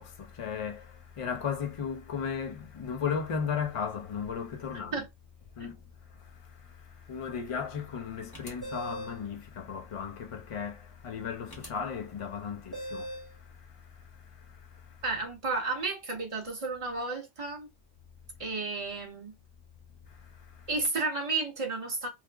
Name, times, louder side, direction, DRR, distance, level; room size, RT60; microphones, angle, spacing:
voice 1, 0.0-5.0 5.6-15.0 20.1-20.7, left 6 dB, 40° left, 0.5 m, -36 dB
sound 1, 8.3-9.2 11.5-11.7 12.7-13.3, right 1 dB, 20° left, 0.8 m, -39 dB
voice 2, 15.0-17.7 18.4-19.3 20.7-22.1, right 3 dB, 30° right, 0.9 m, -32 dB
3.3 x 2.0 x 3.3 m
omnidirectional pair, 1.2 m